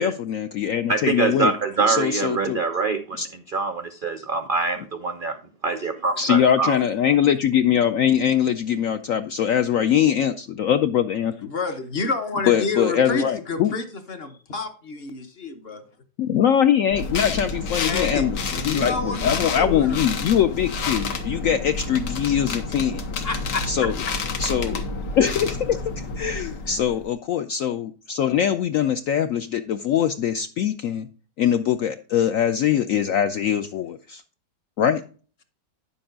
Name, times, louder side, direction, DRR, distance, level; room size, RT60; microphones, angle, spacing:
voice 1, 0.0-1.5 1.9-2.6 3.2-3.3 6.2-11.3 12.5-13.7 16.2-18.4 18.7-23.0 23.7-23.9 24.4-24.8 25.2-31.1 31.4-34.2 34.8-35.0, left 9 dB, 70° left, 9 dB, 0.8 m, -22 dB
voice 2, 0.9-3.2 3.5-5.4 5.6-6.8, right 4 dB, 80° right, 9 dB, 0.4 m, -24 dB
voice 3, 11.4-15.8 17.8-18.3 18.7-20.0 23.2-23.7 26.7-26.8, left 3 dB, 40° left, 8 dB, 1.1 m, -29 dB
sound 1, 16.9-27.1, left 3 dB, 90° left, 1.9 m, -29 dB
10.0 x 7.0 x 3.8 m, 0.38 s
omnidirectional pair, 1.8 m